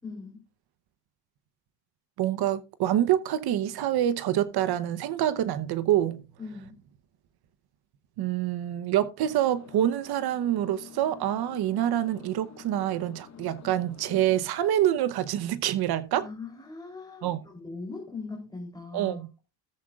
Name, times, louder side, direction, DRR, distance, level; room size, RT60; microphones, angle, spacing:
voice 1, 0.0-0.4 6.4-6.8 16.2-19.2, left 3 dB, 10° left, 3.4 m, -40 dB
voice 2, 2.2-6.2 8.2-16.3 17.2-17.4 18.9-19.3, right 12 dB, 70° right, 0.9 m, -26 dB
sound 1, 9.3-14.4, left 7 dB, 45° left, 1.6 m, -49 dB
16.0 x 7.6 x 2.4 m
cardioid pair, 105°, 39 cm